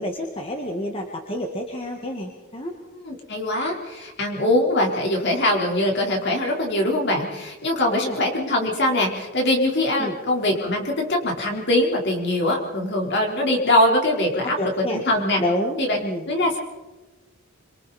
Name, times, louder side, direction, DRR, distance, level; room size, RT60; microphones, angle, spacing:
voice 1, 0.0-2.7 7.9-8.2 10.0-10.2 14.6-15.0 15.4-16.3, left 1 dB, 25° left, 1 dB, 1.9 m, -28 dB
voice 2, 2.9-15.4 15.8-16.0 16.3-16.6, left 1 dB, 50° left, 0 dB, 4.2 m, -22 dB
26.0 x 24.5 x 4.3 m, 1.2 s
head